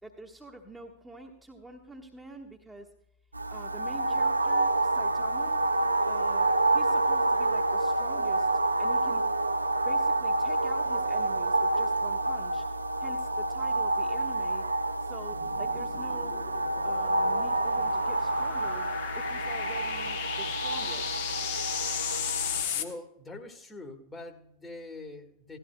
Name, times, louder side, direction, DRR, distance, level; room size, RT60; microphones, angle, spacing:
voice 1, 0.0-2.9 3.5-5.6 6.1-8.5 8.8-9.2 9.8-12.6 13.0-14.6 15.0-16.5 16.8-18.9 19.1-21.2, right 1 dB, 5° right, -1 dB, 1.2 m, -46 dB
sound 1, 3.3-22.6, right 2 dB, 85° right, 0.4 m, -28 dB
sound 2, 15.3-22.8, left 8 dB, 55° left, 1.0 m, -35 dB
voice 2, 22.7-25.6, left 2 dB, 15° left, 5 dB, 1.4 m, -43 dB
16.5 x 13.5 x 2.2 m, 0.74 s
figure-of-eight pair, 90°, 0 cm